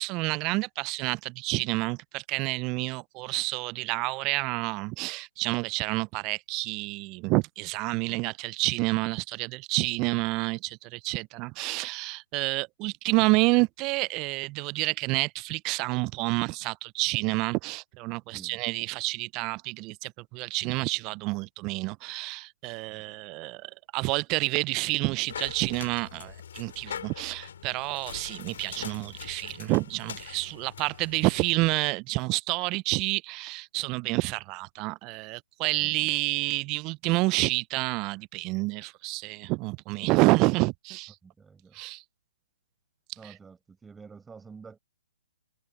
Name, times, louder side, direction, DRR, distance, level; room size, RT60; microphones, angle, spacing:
voice 1, 0.0-41.2 41.7-42.0 43.2-43.3, right 24 dB, 30° right, 0.3 m, -29 dB
sound 1, 25.3-31.5, left 8 dB, 65° left, 3.7 m, -42 dB
voice 2, 28.3-28.6 35.8-36.1 41.2-41.8 43.2-44.8, right 5 dB, 10° right, 6.1 m, -49 dB
hypercardioid pair, 140°, 0 cm